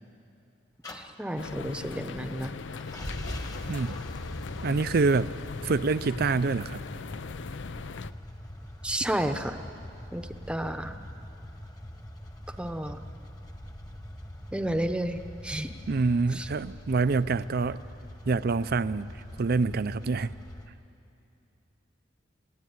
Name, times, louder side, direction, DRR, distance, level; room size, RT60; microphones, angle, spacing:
sound 1, 0.8-20.7, equal, 20° left, 1.3 m, -42 dB
voice 1, 0.9-2.5 8.8-9.6 10.1-10.9 12.6-13.0 14.5-15.7 16.3-16.5, right 1 dB, 5° right, 7 dB, 0.8 m, -31 dB
sound 2, 1.4-8.1, left 5 dB, 70° left, 0.5 m, -39 dB
voice 2, 4.6-5.3 5.6-6.8 15.9-17.8 18.2-19.1 19.4-20.3, right 4 dB, 55° right, 16 dB, 0.5 m, -26 dB
27.5 x 16.0 x 9.5 m, 2.7 s
head